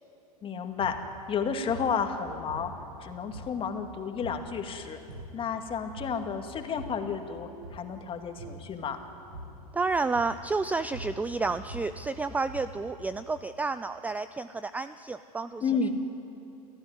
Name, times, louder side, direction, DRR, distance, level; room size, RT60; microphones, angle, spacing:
voice 1, 0.4-1.0 1.3-2.7 3.0-5.0 5.3-9.0 15.6-15.9, left 6 dB, 25° left, 5 dB, 2.3 m, -31 dB
sound 1, 0.7-1.1 1.7-2.0 2.5-3.0 3.3-3.8 4.2-4.5 4.9-5.4 5.9-6.3 6.5-7.1 7.5-7.9 8.4-8.7 9.3-9.7 10.1-10.5 10.8-12.9, right 1 dB, 90° right, 6.4 m, -43 dB
voice 2, 9.7-15.9, right 3 dB, 5° right, 13 dB, 0.5 m, -31 dB
29.5 x 14.0 x 9.7 m, 2.9 s
hypercardioid pair, 100°, 20 cm